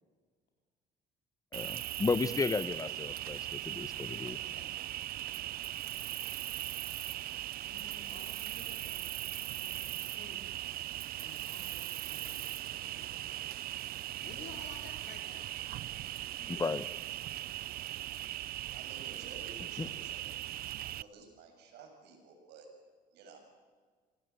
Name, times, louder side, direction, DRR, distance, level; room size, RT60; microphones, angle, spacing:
voice 1, 1.5-4.4 16.5-16.8 19.8-19.9, left 4 dB, 20° left, 16 dB, 1.0 m, -33 dB
Cricket, 1.5-21.0, right 14 dB, 65° right, 0.6 m, -39 dB
voice 2, 4.0-4.7 7.6-10.6 11.1-13.8 14.2-15.7 16.0-16.6, left 5 dB, 75° left, 2 dB, 4.4 m, -55 dB
voice 3, 18.7-20.5 20.8-22.7 23.1-23.4, right 3 dB, 80° right, 4 dB, 7.1 m, -53 dB
28.0 x 18.5 x 8.3 m, 1.5 s
cardioid pair, 110°, 17 cm